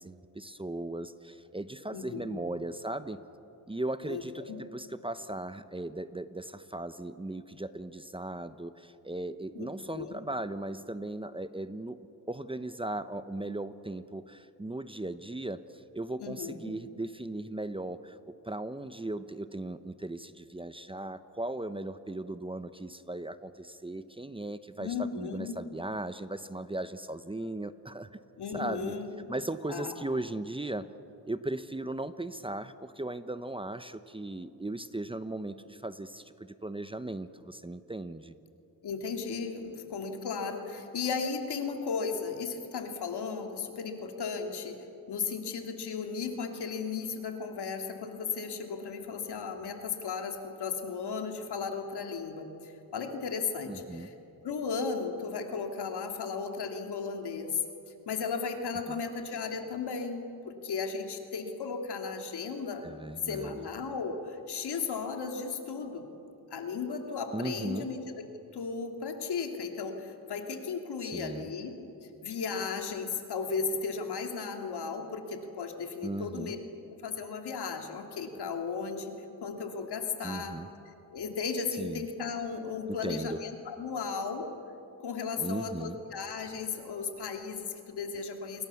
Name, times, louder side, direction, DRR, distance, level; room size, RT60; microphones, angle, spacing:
voice 1, 0.0-3.2 3.7-12.0 12.3-28.1 28.5-28.9 29.3-30.9 31.3-38.3 53.7-54.1 58.9-59.0 62.8-63.6 67.3-67.9 71.0-71.5 76.0-76.5 80.2-80.7 81.8-82.0 83.0-83.4 85.4-86.0, right 2 dB, 15° right, 12 dB, 0.9 m, -37 dB
voice 2, 1.9-2.5 4.0-4.6 9.5-10.2 16.2-16.7 24.8-25.6 28.4-29.1 29.7-29.9 38.8-44.8 45.1-54.1 54.4-57.6 58.1-62.9 63.2-66.1 66.5-68.0 68.5-71.7 72.0-76.6 77.0-79.1 79.4-80.6 81.1-84.5 85.0-88.7, left 5 dB, 75° left, 3 dB, 3.0 m, -35 dB
28.5 x 22.0 x 7.2 m, 2.8 s
cardioid pair, 80°, 39 cm